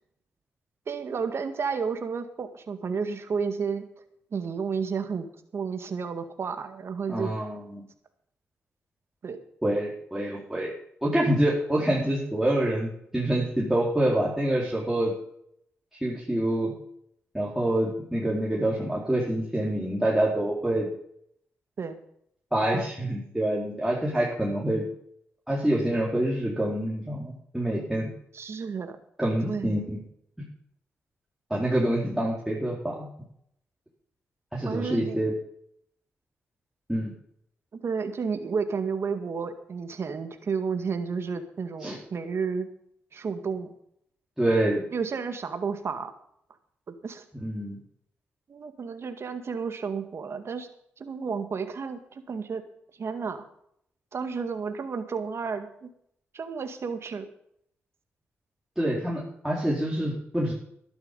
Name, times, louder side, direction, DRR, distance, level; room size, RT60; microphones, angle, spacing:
voice 1, 0.9-3.8 4.3-5.3 5.5-7.3 9.2-9.4 21.8-22.0 28.3-29.0 29.4-29.8 34.7-35.2 37.8-42.7 43.1-43.7 44.9-46.1 46.9-47.3 48.5-50.7 51.0-52.6 53.0-53.4 54.1-55.9 56.3-57.3, right 5 dB, 60° right, 8 dB, 2.0 m, -31 dB
voice 2, 7.1-7.8 9.6-10.7 11.0-15.1 16.0-16.7 17.3-20.9 22.5-24.9 25.5-28.1 29.2-30.0 31.5-33.1 34.5-35.3 36.9-37.1 41.8-42.0 44.4-44.8 47.4-47.8 58.8-60.5, right 1 dB, 5° right, -5 dB, 4.5 m, -26 dB
12.5 x 11.5 x 5.6 m, 0.70 s
supercardioid pair, 50°, 5 cm